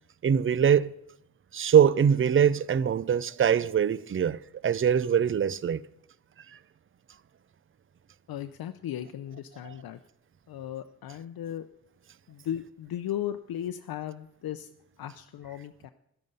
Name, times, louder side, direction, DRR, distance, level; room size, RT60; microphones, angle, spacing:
voice 1, 0.2-0.9 1.5-5.8 9.6-9.7, right 8 dB, 35° right, 0.5 m, -23 dB
voice 2, 8.3-10.0 10.5-11.7 12.3-14.7 15.0-15.9, left 11 dB, 80° left, 0.6 m, -36 dB
11.5 x 11.0 x 5.3 m
cardioid pair, 65°, 35 cm